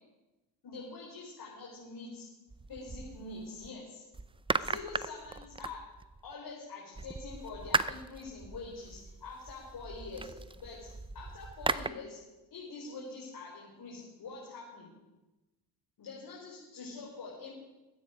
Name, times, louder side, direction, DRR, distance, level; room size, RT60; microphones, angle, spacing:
voice 1, 0.6-2.3 2.7-4.0 4.6-5.8 6.2-10.9 11.1-12.2 12.5-14.9 16.0-17.5, left 3 dB, 50° left, -4 dB, 4.6 m, -45 dB
sound 1, 2.5-3.7 4.1-6.3 6.9-11.9, right 3 dB, 10° right, 0.5 m, -37 dB
21.5 x 9.4 x 5.2 m, 1.1 s
hypercardioid pair, 65°, 47 cm